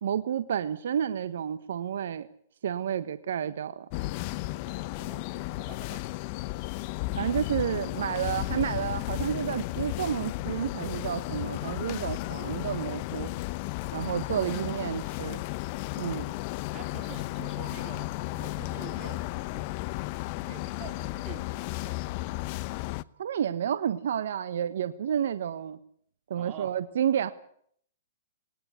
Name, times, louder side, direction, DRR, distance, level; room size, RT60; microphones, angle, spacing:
voice 1, 0.0-2.3 2.6-3.9 7.1-13.3 13.9-15.4 16.0-16.3 23.2-25.8 26.3-27.3, right 9 dB, 70° right, 12 dB, 1.3 m, -30 dB
sound 1, 3.9-23.0, left 19 dB, 45° left, 0.9 m, -34 dB
voice 2, 4.6-5.3 5.6-6.1 8.3-8.7 14.5-15.3 16.7-19.2 19.5-19.7 20.4-22.1 26.3-26.8, right 10 dB, 30° right, 7 dB, 2.8 m, -47 dB
20.0 x 19.0 x 8.4 m, 0.63 s
hypercardioid pair, 135°, 0 cm